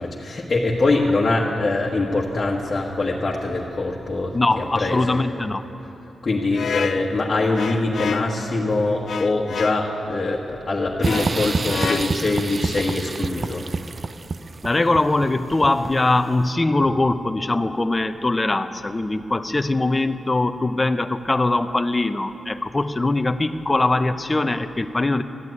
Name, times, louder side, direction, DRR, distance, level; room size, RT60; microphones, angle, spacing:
voice 1, 0.0-5.2 6.2-13.6, left 2 dB, 40° left, -4 dB, 1.4 m, -23 dB
voice 2, 4.3-5.6 14.6-25.2, left 2 dB, 25° left, 10 dB, 0.6 m, -21 dB
sound 1, 6.5-8.4 9.1-9.9 11.0-12.4, left 6 dB, 65° left, 0.5 m, -30 dB
sound 2, 11.0-16.2, right 3 dB, 40° right, 0.4 m, -28 dB
14.0 x 9.4 x 9.6 m, 3.0 s
cardioid pair, 85°, 0 cm